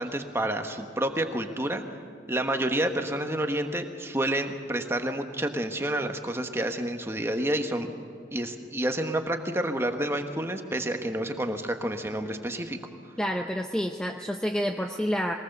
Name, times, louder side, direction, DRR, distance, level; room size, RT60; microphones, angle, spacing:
voice 1, 0.0-2.0 2.3-7.9 8.3-12.8, right 1 dB, 15° right, 5 dB, 1.2 m, -29 dB
voice 2, 13.2-15.3, equal, 5° left, 3 dB, 0.6 m, -28 dB
22.0 x 19.0 x 6.7 m, 2.3 s
head